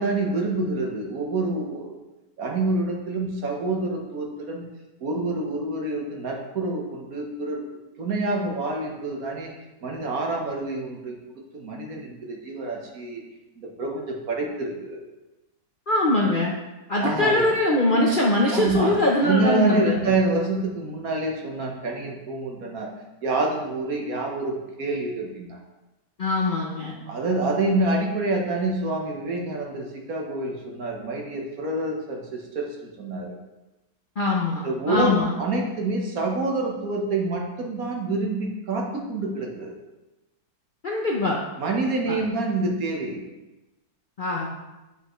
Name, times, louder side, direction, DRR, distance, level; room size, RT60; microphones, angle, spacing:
voice 1, 0.0-1.9 2.4-4.6 5.0-7.6 8.0-9.5 9.8-11.2 11.5-13.2 13.6-15.1 17.0-17.5 18.5-22.9 23.2-25.6 27.1-33.4 34.6-39.8 41.6-43.2, right 2 dB, 60° right, 0 dB, 1.4 m, -27 dB
voice 2, 15.9-16.5 16.9-20.0 26.2-26.9 34.2-35.3 40.8-41.4 42.1-42.2 44.2-44.5, left 2 dB, 50° left, -2 dB, 0.6 m, -22 dB
8.5 x 5.6 x 3.1 m, 1.0 s
omnidirectional pair, 1.9 m